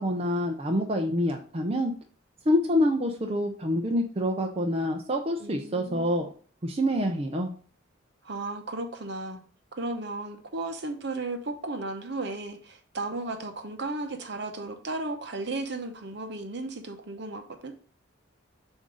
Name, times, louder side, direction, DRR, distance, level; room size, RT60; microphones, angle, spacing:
voice 1, 0.0-1.9 2.5-6.3 6.6-7.5, left 1 dB, 30° right, 2 dB, 0.5 m, -26 dB
voice 2, 5.4-6.3 8.2-9.4 9.7-17.7, right 2 dB, 55° right, 6 dB, 0.8 m, -35 dB
7.5 x 2.7 x 4.8 m, 0.42 s
head